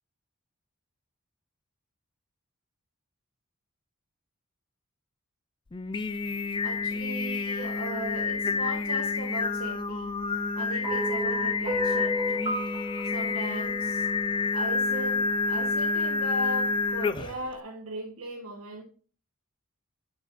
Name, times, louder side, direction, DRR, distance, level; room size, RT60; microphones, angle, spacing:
Singing, 5.7-17.5, left 4 dB, 20° left, 0.3 m, -29 dB
voice 1, 6.3-10.2 10.5-12.5 13.0-14.1 14.5-18.8, right 1 dB, 85° right, 1.1 m, -38 dB
sound 1, 10.8-15.2, equal, 20° right, 1.7 m, -33 dB
7.2 x 6.3 x 2.5 m
head